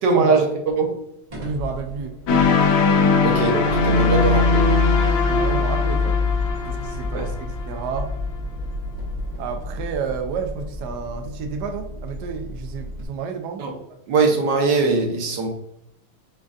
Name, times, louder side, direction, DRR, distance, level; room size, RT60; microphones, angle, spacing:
voice 1, 0.0-0.5 0.8-0.9 3.2-4.6 7.1-7.3 13.6-13.7 14.1-15.5, right 4 dB, 60° right, 2 dB, 1.3 m, -21 dB
sound 1, 1.3-13.1, left 4 dB, 25° right, 0.8 m, -27 dB
voice 2, 1.4-2.2 5.2-6.2 6.7-8.1 9.4-13.6 13.9-14.0, right 5 dB, 80° right, 4 dB, 0.9 m, -31 dB
sound 2, 2.3-8.2, left 3 dB, 85° left, 1.7 m, -21 dB
7.4 x 2.6 x 2.4 m, 0.78 s
omnidirectional pair, 2.4 m